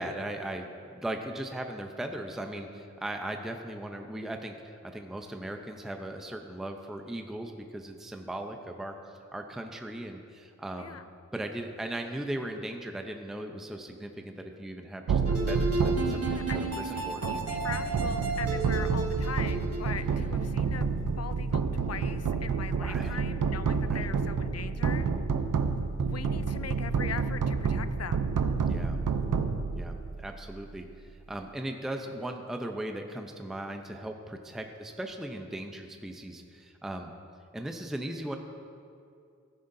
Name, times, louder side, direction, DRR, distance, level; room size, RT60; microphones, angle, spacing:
voice 1, 0.0-11.0 11.3-17.2 22.8-23.2 23.9-24.1 28.7-29.0 29.7-37.1 37.5-38.4, right 1 dB, ahead, 4 dB, 0.6 m, -38 dB
sound 1, 15.1-30.4, right 5 dB, 75° right, 0.6 m, -29 dB
sound 2, 15.3-20.6, right 3 dB, 50° right, 1.6 m, -33 dB
voice 2, 16.3-20.9 21.2-25.1 26.0-28.2, left 7 dB, 55° left, 13 dB, 0.4 m, -40 dB
14.5 x 9.2 x 2.7 m, 2.4 s
wide cardioid pair, 90°, 31 cm